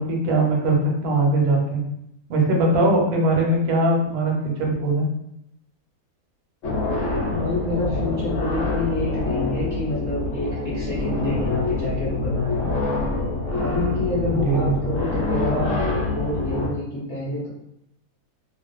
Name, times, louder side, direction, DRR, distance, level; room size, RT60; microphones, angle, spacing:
voice 1, 0.0-1.8 2.3-4.3 4.6-5.0 14.3-14.7, right 2 dB, 85° right, -1 dB, 1.2 m, -20 dB
sound 1, 6.6-16.7, left 2 dB, 65° left, 0.9 m, -26 dB
voice 2, 7.3-12.7 13.6-17.5, left 2 dB, 30° left, -9 dB, 0.5 m, -28 dB
2.5 x 2.3 x 2.2 m, 0.79 s
omnidirectional pair, 1.6 m